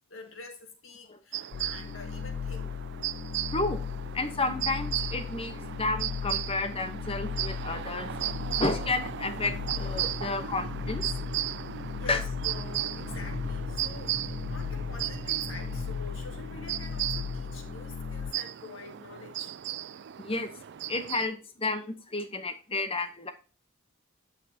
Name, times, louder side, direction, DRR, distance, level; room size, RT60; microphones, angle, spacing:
voice 1, 0.1-2.8 11.9-14.2 14.5-19.5, left 3 dB, 65° left, 2.0 m, -46 dB
sound 1, 1.3-21.3, right 12 dB, 55° right, 0.4 m, -36 dB
sound 2, 1.5-18.3, left 7 dB, 50° left, 0.3 m, -37 dB
sound 3, 3.0-3.2 3.8-4.7 5.1-5.4 5.8-18.3, right 1 dB, 10° right, 0.6 m, -47 dB
voice 2, 3.5-3.8 4.1-8.1 8.6-11.2 12.1-12.2 20.2-20.5 20.9-23.3, left 2 dB, 25° left, 1.0 m, -31 dB
9.2 x 6.2 x 2.8 m
head